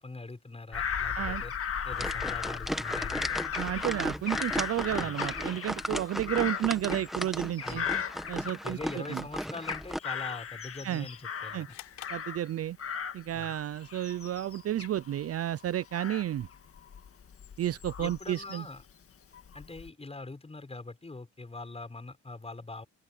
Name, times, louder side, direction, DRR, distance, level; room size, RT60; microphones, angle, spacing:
voice 1, 0.0-1.5 1.8-3.4 5.0-5.1 7.6-7.9 8.6-11.8 13.3-13.5 18.0-18.8 19.5-22.9, left 3 dB, 20° left, 6.6 m, -43 dB
Bird vocalization bird call bird song / Crow, 0.7-9.0 9.4-12.5 12.8-18.8 19.3-19.9, left 7 dB, 50° left, 2.0 m, -37 dB
sound 1, 1.9-10.0, equal, ahead, 1.4 m, -35 dB
voice 2, 3.5-7.9 8.3-9.2 10.8-11.1 11.5-11.7 12.1-12.8 13.1-16.5 17.6-18.7, right 12 dB, 50° right, 0.6 m, -32 dB
sound 2, 11.7-13.1, left 14 dB, 90° left, 6.8 m, -49 dB
cardioid pair, 90°, 30 cm